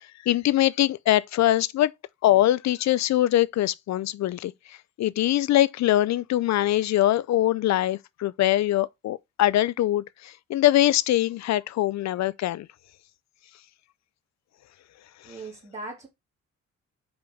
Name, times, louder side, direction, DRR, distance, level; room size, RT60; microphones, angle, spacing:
voice 1, 0.2-1.9 2.2-4.5 5.0-12.7, left 14 dB, 65° left, 0.5 m, -23 dB
voice 2, 15.2-16.1, right 2 dB, 25° right, 2.3 m, -39 dB
5.2 x 4.9 x 4.9 m
cardioid pair, 90°, 30 cm